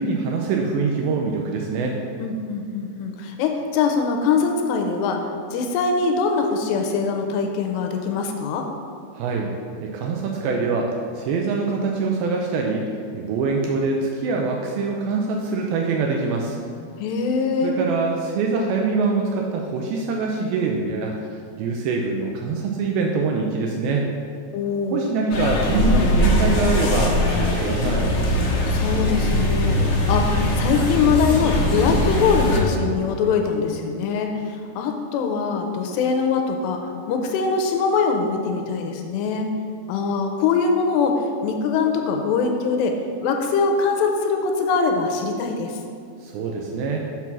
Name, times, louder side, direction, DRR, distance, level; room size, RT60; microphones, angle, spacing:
voice 1, 0.0-2.0 9.1-9.5 9.8-16.6 17.6-21.2 21.6-24.1 24.9-28.1 46.2-47.1, right 4 dB, 90° right, 0 dB, 2.2 m, -24 dB
voice 2, 2.2-8.7 17.0-17.7 24.5-25.1 28.7-39.5 39.9-45.8, left 5 dB, 85° left, 4 dB, 2.8 m, -23 dB
sound 1, 25.3-32.6, left 1 dB, 60° left, 2.0 m, -21 dB
6.8 x 6.0 x 6.0 m, 2.4 s
omnidirectional pair, 4.9 m